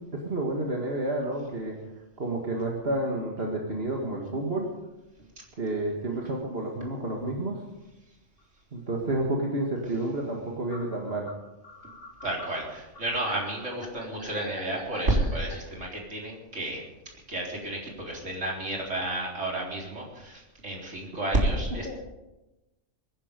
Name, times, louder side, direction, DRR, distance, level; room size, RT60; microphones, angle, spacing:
voice 1, 0.1-1.8 2.2-4.7 5.6-7.6 8.7-11.3 21.9-22.0, right 2 dB, 50° right, -1 dB, 2.1 m, -30 dB
sound 1, 8.4-8.5 9.9-10.0 10.7-15.6, left 2 dB, 45° left, 2.8 m, -45 dB
voice 2, 12.2-16.9 17.3-22.0, right 1 dB, 65° right, -2 dB, 4.3 m, -31 dB
23.0 x 11.0 x 5.3 m, 1.0 s
omnidirectional pair, 1.4 m